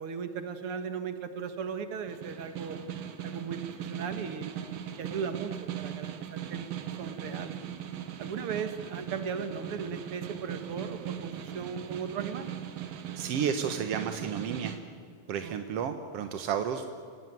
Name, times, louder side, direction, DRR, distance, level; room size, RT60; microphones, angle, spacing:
voice 1, 0.0-2.8 3.2-4.7 5.0-6.7 7.0-7.6 8.2-12.5 15.4-15.9, right 6 dB, 50° right, 9 dB, 2.1 m, -37 dB
Snare drum, 2.1-14.8, right 10 dB, 80° right, 3.3 m, -39 dB
voice 2, 13.2-14.7 15.3-16.8, right 7 dB, 65° right, 8 dB, 1.5 m, -32 dB
29.0 x 18.5 x 9.3 m, 2.3 s
omnidirectional pair, 4.0 m